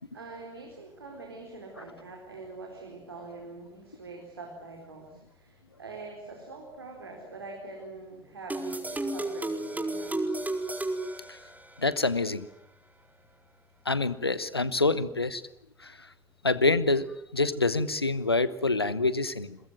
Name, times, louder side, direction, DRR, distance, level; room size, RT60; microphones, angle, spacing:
voice 1, 0.1-10.2, right 3 dB, 85° right, 0 dB, 4.3 m, -44 dB
sound 1, 8.5-12.0, right 2 dB, 10° right, 4.4 m, -33 dB
voice 2, 11.8-12.5 13.8-15.4 15.8-16.1 16.4-17.1 17.3-19.6, left 3 dB, 90° left, 16 dB, 1.0 m, -26 dB
29.0 x 22.5 x 7.7 m, 0.76 s
figure-of-eight pair, 55°, 13 cm